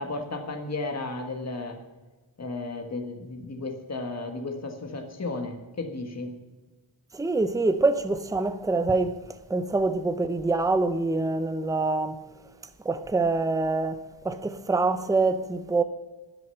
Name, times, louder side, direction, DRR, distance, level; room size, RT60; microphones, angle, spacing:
voice 1, 0.0-1.8 2.4-6.3, left 2 dB, 35° left, 1.6 m, -34 dB
voice 2, 7.1-9.2 9.5-12.2 12.8-15.8, right 3 dB, 5° right, 0.6 m, -25 dB
11.0 x 10.5 x 5.5 m
wide cardioid pair, 125°, 47 cm